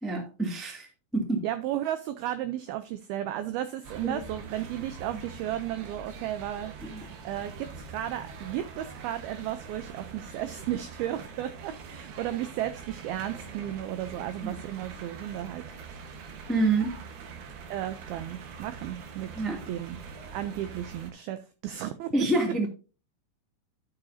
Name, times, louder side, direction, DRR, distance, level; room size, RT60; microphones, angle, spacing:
voice 1, 0.0-0.9 1.1-1.4 4.0-4.2 6.9-7.1 14.4-14.5 16.5-16.9 19.3-19.6 22.1-22.7, right 2 dB, ahead, 1 dB, 0.4 m, -27 dB
voice 2, 1.4-16.1 17.7-19.3 19.7-20.0 20.3-22.1, right 12 dB, 90° right, 11 dB, 2.1 m, -34 dB
sound 1, 3.8-21.1, right 5 dB, 70° right, 3.0 m, -44 dB
12.0 x 6.8 x 2.7 m, 0.34 s
omnidirectional pair, 5.0 m